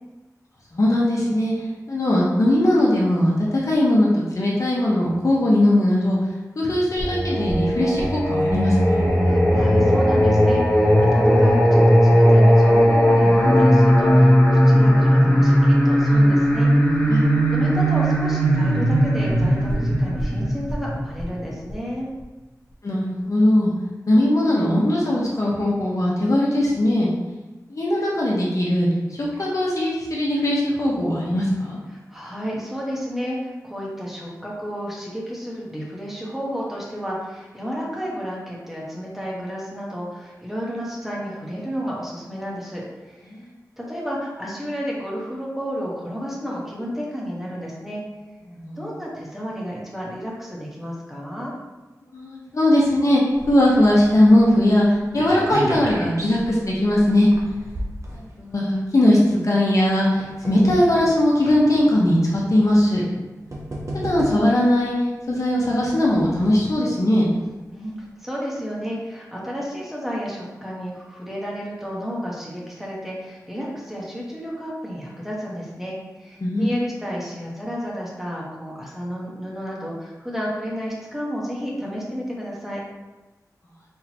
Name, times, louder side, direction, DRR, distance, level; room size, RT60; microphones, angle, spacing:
voice 1, 0.7-6.2 6.5-9.1 17.0-17.2 22.8-23.7 24.1-27.1 27.7-31.8 43.3-43.5 48.5-48.8 52.1-53.2 53.5-57.3 58.1-63.0 64.0-64.9 65.3-67.3 76.4-76.9, left 1 dB, 55° left, -4 dB, 1.0 m, -19 dB
Singing, 7.0-21.7, equal, 20° left, 1.4 m, -17 dB
voice 2, 9.2-17.2 17.5-22.1 31.9-43.3 43.8-48.0 48.8-51.5 67.7-82.8, equal, 5° right, -5 dB, 1.2 m, -31 dB
sound 1, 53.3-58.8 59.6-61.2 62.0-62.1 63.1-63.2 63.5-64.7 65.6-66.7 67.2-67.3 67.5-67.6, right 1 dB, 55° right, 0.8 m, -33 dB
4.3 x 3.8 x 2.9 m, 1.1 s
wide cardioid pair, 85°, 6 cm